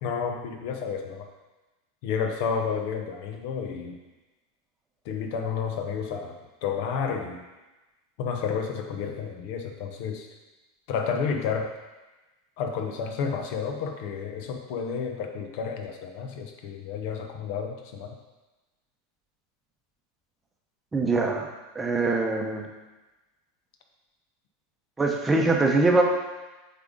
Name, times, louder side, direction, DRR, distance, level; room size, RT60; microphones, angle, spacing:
voice 1, 0.0-1.3 2.0-4.0 5.1-7.4 8.2-10.3 10.9-11.7 12.6-18.1, left 6 dB, 60° left, 4 dB, 0.8 m, -31 dB
voice 2, 20.9-21.5 21.7-22.6 25.0-26.0, right 3 dB, 15° right, 1 dB, 0.8 m, -23 dB
7.7 x 3.7 x 3.7 m, 1.1 s
supercardioid pair, 130°, 0 cm